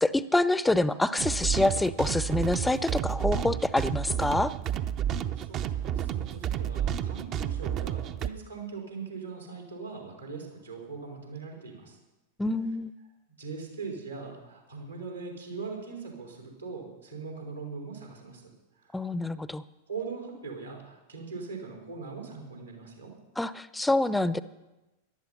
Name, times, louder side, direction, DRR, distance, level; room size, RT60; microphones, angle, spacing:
voice 1, 0.0-4.5 12.4-12.9 18.9-19.6 23.4-24.4, left 2 dB, 5° left, 16 dB, 0.6 m, -26 dB
sound 1, 1.2-8.3, right 10 dB, 35° right, 0.7 m, -31 dB
voice 2, 5.5-12.0 13.4-18.5 18.9-19.0 19.9-23.1, right 4 dB, 85° right, 0 dB, 4.8 m, -40 dB
18.5 x 12.0 x 5.7 m, 1.1 s
figure-of-eight pair, 90°, 0 cm